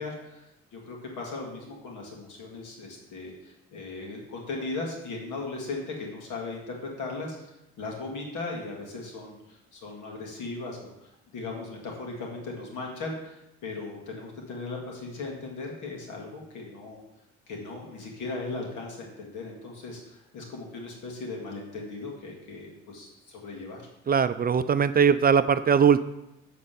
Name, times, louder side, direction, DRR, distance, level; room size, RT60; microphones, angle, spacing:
voice 1, 0.0-17.0 17.5-23.8, left 3 dB, 85° left, 0 dB, 2.3 m, -38 dB
voice 2, 24.1-26.0, right 7 dB, 30° right, 12 dB, 0.4 m, -20 dB
7.6 x 4.2 x 6.8 m, 0.89 s
cardioid pair, 90°, 30 cm